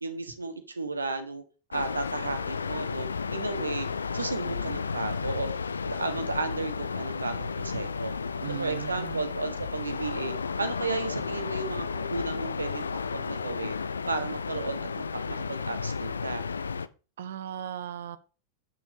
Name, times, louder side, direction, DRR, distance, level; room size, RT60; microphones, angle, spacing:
voice 1, 0.0-1.4 1.7-3.9 4.1-5.5 5.8-8.1 8.6-12.8 13.1-13.8 14.1-16.4, right 3 dB, 80° right, 10 dB, 1.4 m, -34 dB
sound 1, 1.7-16.9, left 5 dB, 75° left, 0.5 m, -33 dB
voice 2, 8.4-9.3 17.2-18.2, right 10 dB, 60° right, 14 dB, 0.9 m, -37 dB
8.6 x 6.2 x 5.0 m, 0.35 s
figure-of-eight pair, 90°, 0 cm